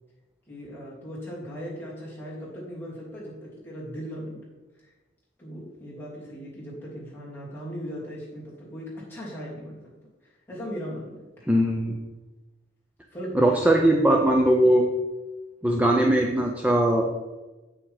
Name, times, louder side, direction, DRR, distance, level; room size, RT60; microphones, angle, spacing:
voice 1, 0.5-4.5 4.8-4.9 5.4-9.9 10.2-11.3 13.1-13.4, equal, 10° left, -7 dB, 3.1 m, -38 dB
voice 2, 11.5-12.0 13.3-14.9 15.6-17.1, right 1 dB, 10° right, 1 dB, 0.6 m, -20 dB
8.6 x 6.1 x 4.8 m, 1.2 s
head